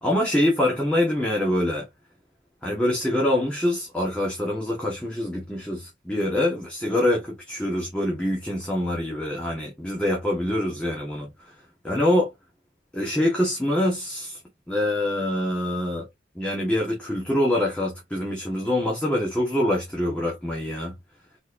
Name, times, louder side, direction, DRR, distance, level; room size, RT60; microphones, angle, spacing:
voice 1, 0.0-1.9 2.6-11.5 11.8-12.3 12.9-14.4 14.7-16.1 16.3-20.9, left 1 dB, 5° left, 1.6 m, -25 dB
4.5 x 4.3 x 2.7 m
head